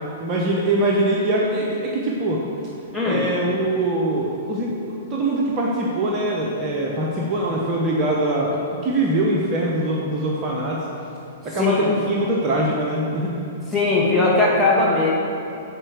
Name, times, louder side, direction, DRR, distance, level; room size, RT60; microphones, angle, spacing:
voice 1, 0.2-2.4 3.0-10.8 11.4-13.3, right 1 dB, 30° right, -3 dB, 1.0 m, -23 dB
voice 2, 2.9-3.3 11.6-11.9 13.7-15.1, left 3 dB, 5° left, -7 dB, 2.0 m, -19 dB
9.2 x 4.4 x 6.4 m, 2.7 s
figure-of-eight pair, 110°, 0 cm